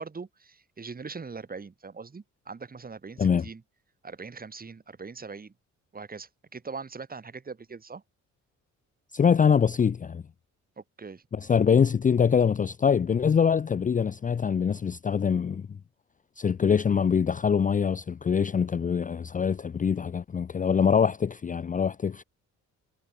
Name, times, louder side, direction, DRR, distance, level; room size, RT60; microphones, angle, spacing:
voice 1, 0.0-3.6 4.0-5.5 5.9-8.0 10.8-11.2, right 4 dB, 30° right, 3.1 m, -41 dB
voice 2, 9.1-10.2 11.3-15.7 16.4-22.2, left 7 dB, 25° left, 0.5 m, -24 dB
cardioid pair, 90°, 30 cm